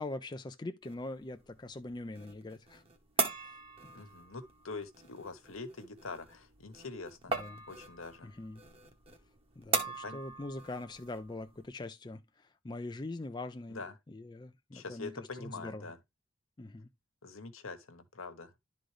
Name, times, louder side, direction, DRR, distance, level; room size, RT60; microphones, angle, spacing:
voice 1, 0.0-2.8 3.2-3.9 7.4-7.6 8.2-8.6 9.6-15.9 16.6-16.9, left 2 dB, 20° left, 0.4 m, -43 dB
sound 1, 0.8-11.7, right 4 dB, 30° right, 1.1 m, -40 dB
voice 2, 3.9-7.3 7.7-8.3 10.0-10.2 13.7-13.9 14.7-16.0 17.2-18.5, left 3 dB, 80° left, 1.2 m, -44 dB
11.5 x 3.9 x 3.2 m
head